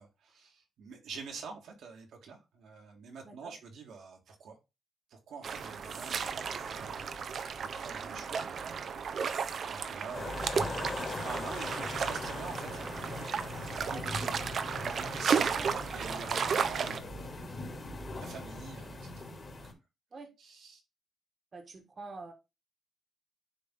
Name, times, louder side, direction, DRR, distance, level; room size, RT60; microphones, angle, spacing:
voice 1, 0.0-4.6 5.1-8.5 9.7-12.9 13.8-14.4 14.9-15.6 15.9-17.5 18.1-19.4 20.4-20.8, right 5 dB, 80° right, 1.9 m, -47 dB
sound 1, 5.4-17.0, right 6 dB, 55° right, 0.7 m, -34 dB
sound 2, 5.5-17.8, left 2 dB, 85° left, 2.7 m, -56 dB
sound 3, 10.1-19.7, left 2 dB, 35° left, 2.5 m, -40 dB
voice 2, 15.5-16.0 20.1-20.3 21.5-22.3, right 3 dB, 40° right, 1.4 m, -46 dB
9.9 x 3.5 x 3.7 m
cardioid pair, 100°, 0 cm